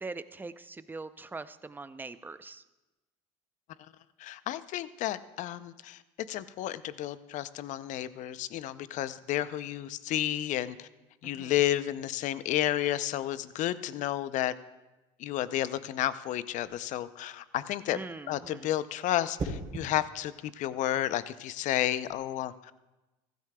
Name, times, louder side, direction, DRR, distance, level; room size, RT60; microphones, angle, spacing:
voice 1, 0.0-2.6 11.2-11.5 17.9-18.7, right 3 dB, 15° right, 13 dB, 0.5 m, -42 dB
voice 2, 4.2-6.0 6.3-10.9 11.2-14.5 15.2-22.7, left 13 dB, 55° left, 15 dB, 0.5 m, -31 dB
sound 1, 16.5-16.9 19.4-19.9 21.9-22.2, right 3 dB, 35° right, 3.3 m, -37 dB
15.5 x 13.0 x 2.3 m, 1.1 s
supercardioid pair, 90°, 15 cm